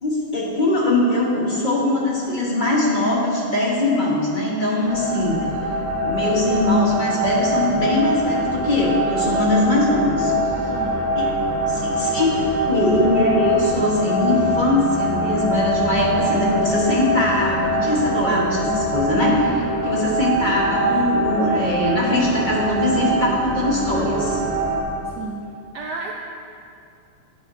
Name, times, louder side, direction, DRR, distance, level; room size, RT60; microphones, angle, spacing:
voice 1, 0.0-5.4 6.0-10.3 11.1-11.3 11.7-19.5 19.8-24.4, left 1 dB, 30° left, -4 dB, 1.0 m, -21 dB
sound 1, 4.8-24.8, right 1 dB, 40° right, 1.4 m, -23 dB
voice 2, 10.7-11.0 19.2-19.8 25.1-25.5 25.7-26.2, right 4 dB, 80° right, 0 dB, 0.9 m, -32 dB
10.5 x 8.5 x 2.6 m, 2.5 s
omnidirectional pair, 2.4 m